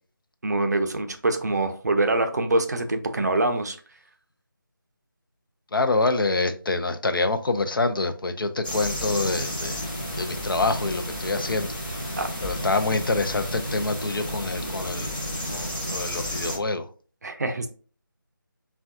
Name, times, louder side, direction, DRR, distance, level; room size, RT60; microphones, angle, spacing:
voice 1, 0.4-3.8 12.2-12.3 17.2-17.7, right 2 dB, 50° right, 0.4 m, -24 dB
voice 2, 5.7-11.7 12.4-15.2 15.5-16.9, left 3 dB, 80° left, 0.4 m, -26 dB
sound 1, 8.6-16.6, equal, 25° left, 0.7 m, -32 dB
3.4 x 2.2 x 2.6 m
figure-of-eight pair, 165°, 11 cm